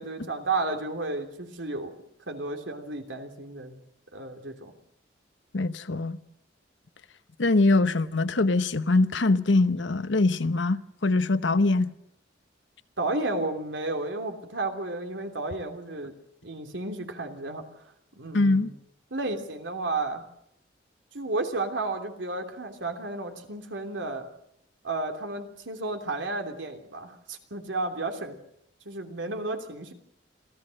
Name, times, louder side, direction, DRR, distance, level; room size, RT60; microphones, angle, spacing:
voice 1, 0.0-1.9 2.3-3.8 4.1-4.7 13.0-16.1 16.4-17.6 18.1-18.7 19.1-20.2 21.1-24.3 24.8-28.4 28.8-29.9, right 2 dB, 85° right, 3.1 m, -32 dB
voice 2, 5.5-6.2 7.4-11.9 18.3-18.7, left 2 dB, 80° left, 1.0 m, -23 dB
26.5 x 15.5 x 6.5 m
head